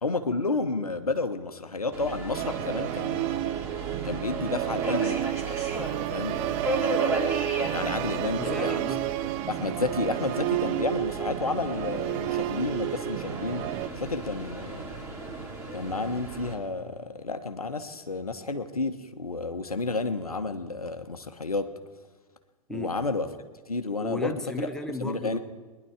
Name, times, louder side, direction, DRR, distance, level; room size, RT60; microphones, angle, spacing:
voice 1, 0.0-3.4 4.0-5.2 6.1-7.3 7.7-8.8 9.5-13.7 13.9-14.9 15.7-21.7 22.7-23.3 23.7-24.7 25.0-25.4, left 3 dB, 80° left, 8 dB, 1.1 m, -31 dB
Subway metro underground, 1.9-16.5, right 2 dB, 15° right, 3.2 m, -35 dB
Musical instrument, 2.3-13.9, right 16 dB, 35° right, 0.4 m, -31 dB
voice 2, 8.4-9.1 22.7-23.0 24.0-25.4, left 1 dB, 5° left, 6 dB, 0.9 m, -35 dB
22.0 x 11.0 x 4.9 m, 1.4 s
figure-of-eight pair, 95°, 19 cm